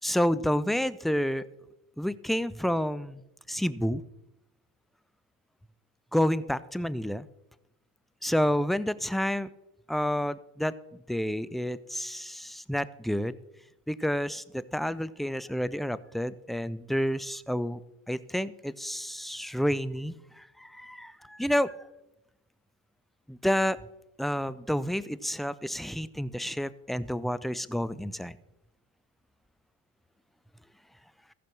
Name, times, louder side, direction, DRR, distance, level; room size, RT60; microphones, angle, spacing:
voice 1, 0.0-1.4 2.0-3.2 3.5-4.0 6.1-7.3 8.2-9.5 9.9-10.7 11.1-13.3 13.9-17.8 18.1-21.8 23.3-23.8 24.2-28.4, equal, ahead, 16 dB, 0.3 m, -29 dB
14.5 x 5.9 x 6.3 m, 0.93 s
hypercardioid pair, 70°, 40 cm